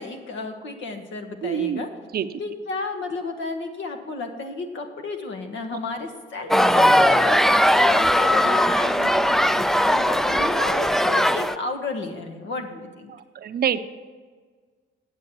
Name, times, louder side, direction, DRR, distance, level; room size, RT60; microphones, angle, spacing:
voice 1, 0.0-1.9 2.4-13.1, left 3 dB, 70° left, 5 dB, 1.5 m, -32 dB
voice 2, 1.4-1.8 2.1-2.3 13.1-13.8, right 9 dB, 50° right, 12 dB, 0.6 m, -26 dB
sound 1, 6.5-11.6, equal, ahead, 0.3 m, -19 dB
9.1 x 7.4 x 6.9 m, 1.5 s
cardioid pair, 90°, 20 cm